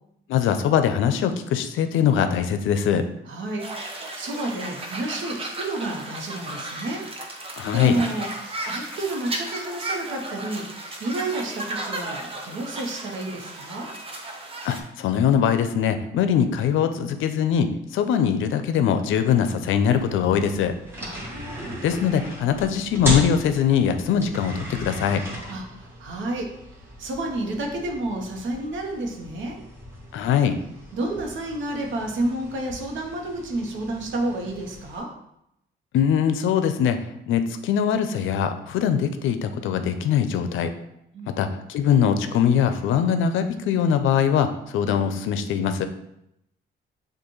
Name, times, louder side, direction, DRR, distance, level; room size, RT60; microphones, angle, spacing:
voice 1, 0.3-3.1 7.6-8.0 14.6-20.8 21.8-25.2 30.1-30.6 35.9-37.0 37.3-40.7 41.4-45.8, left 8 dB, 80° left, 9 dB, 0.5 m, -22 dB
voice 2, 3.2-3.6 4.2-7.0 7.3-10.7 11.0-13.9 21.0-21.8 25.5-29.6 30.9-35.1 41.1-41.5, right 2 dB, 75° right, 1 dB, 1.0 m, -30 dB
sound 1, 3.6-14.8, right 2 dB, 30° right, 0.8 m, -35 dB
sound 2, 20.0-35.0, equal, 10° right, 1.4 m, -37 dB
6.9 x 2.5 x 3.1 m, 0.81 s
cardioid pair, 90°, 20 cm